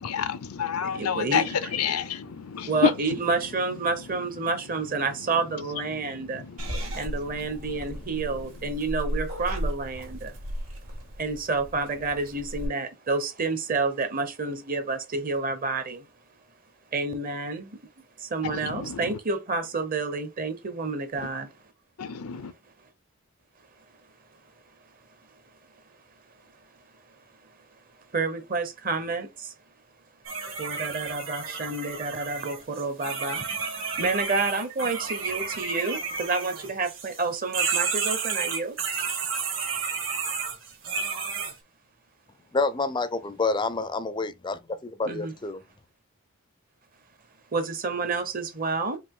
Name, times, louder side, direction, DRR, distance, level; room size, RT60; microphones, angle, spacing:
voice 1, 0.0-3.2 4.4-4.5 5.9-7.5 18.4-19.2 21.2-21.3 22.0-22.5, left 6 dB, 90° left, 0.6 m, -30 dB
voice 2, 0.9-1.5 2.6-6.4 6.9-10.4 11.2-16.1 16.9-17.8 18.2-21.5 28.1-29.5 30.6-38.8 45.0-45.3 47.5-49.0, right 3 dB, 40° right, 0.8 m, -29 dB
Purr / Meow, 6.6-12.7, equal, 85° right, 2.1 m, -35 dB
sound 1, 30.2-37.2 37.5-41.5, right 5 dB, 60° right, 1.6 m, -31 dB
voice 3, 42.5-45.6, left 3 dB, 20° left, 0.4 m, -28 dB
5.0 x 2.5 x 3.7 m
head